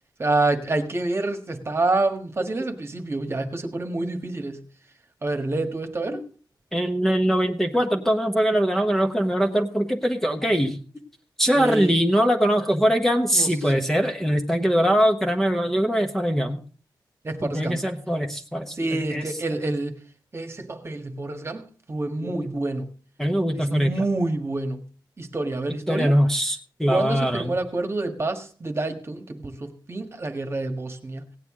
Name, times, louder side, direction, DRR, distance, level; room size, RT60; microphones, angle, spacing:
voice 1, 0.2-4.6 5.2-6.2 11.5-11.9 13.3-13.5 13.7-13.8 17.2-17.8 18.8-20.0 20.3-22.9 23.7-24.8 25.2-26.1 26.9-31.3, right 2 dB, 30° right, 1.5 m, -27 dB
voice 2, 6.7-10.8 11.4-16.6 17.4-18.8 19.1-19.3 22.2-22.5 23.2-24.0 25.9-27.6, equal, 5° left, 1.1 m, -22 dB
17.0 x 9.3 x 3.7 m
wide cardioid pair, 120°, 8 cm